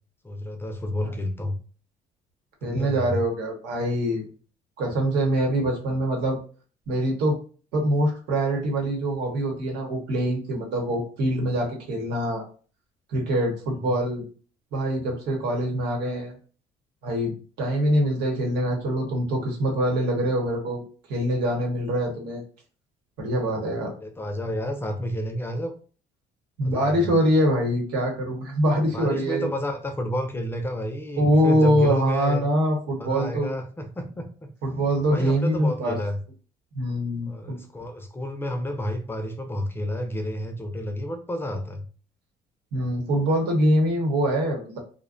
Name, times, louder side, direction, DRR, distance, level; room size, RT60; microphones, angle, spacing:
voice 1, 0.2-1.6 2.6-3.2 13.8-14.0 24.0-25.7 26.6-27.1 28.9-32.4 33.0-34.5 35.1-36.2 37.2-41.8, equal, 15° left, 6 dB, 0.4 m, -30 dB
voice 2, 2.6-4.2 4.8-6.4 6.9-7.4 7.7-12.4 13.1-14.2 14.7-16.3 17.0-20.8 21.1-22.4 23.2-23.9 26.6-29.5 31.2-33.6 34.6-36.0 36.7-37.6 42.7-44.8, equal, 85° right, 0 dB, 1.0 m, -24 dB
2.5 x 2.1 x 2.5 m, 0.39 s
cardioid pair, 110°, 17 cm